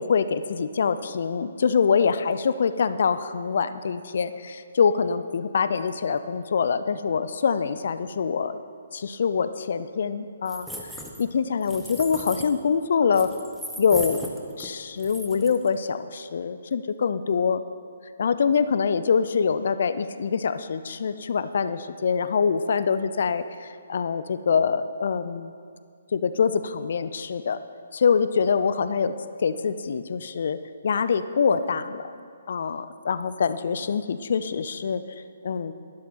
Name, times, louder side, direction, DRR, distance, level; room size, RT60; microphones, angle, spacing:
voice 1, 0.0-8.6 8.9-10.7 11.2-13.3 13.8-14.3 14.6-17.6 18.2-25.5 26.1-27.6 27.9-29.1 29.4-30.6 30.8-32.1 32.5-35.0 35.4-35.7, left 6 dB, 50° left, 12 dB, 0.5 m, -24 dB
sound 1, 10.5-11.3 11.6-12.5 13.1-14.7 15.0-15.7, equal, ahead, 0.9 m, -37 dB
11.5 x 11.5 x 4.2 m, 2.2 s
figure-of-eight pair, 135°, 0 cm